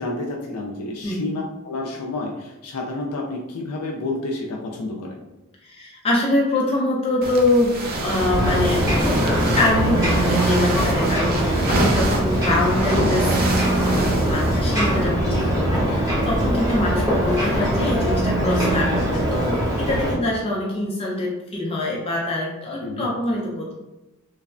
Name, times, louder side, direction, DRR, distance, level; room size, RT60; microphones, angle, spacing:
voice 1, 0.0-5.2 11.4-11.7 15.2-15.4 22.8-23.1, left 2 dB, 85° left, -1 dB, 0.4 m, -30 dB
voice 2, 5.6-13.3 13.6-23.8, left 1 dB, 25° left, -3 dB, 0.5 m, -24 dB
sound 1, 7.2-15.0, right 2 dB, 40° right, 0.4 m, -28 dB
Ocean, 7.9-20.2, right 1 dB, 15° right, 0.8 m, -21 dB
3.2 x 2.0 x 2.4 m, 1.0 s
head